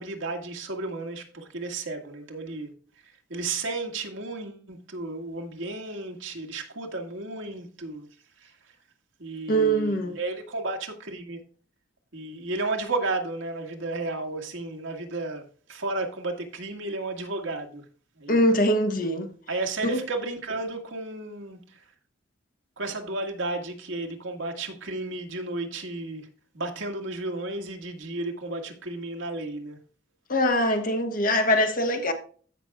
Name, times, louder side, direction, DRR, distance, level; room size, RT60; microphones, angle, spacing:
voice 1, 0.0-2.7 3.0-8.1 8.4-8.5 9.2-11.4 12.1-15.4 15.7-17.8 18.2-18.4 19.5-21.8 22.8-26.3 26.5-29.8, right 2 dB, 70° right, 1.9 m, -33 dB
voice 2, 9.5-10.2 18.3-19.3 19.8-20.0 30.3-32.1, equal, 45° left, 1.3 m, -23 dB
15.5 x 6.1 x 2.3 m
head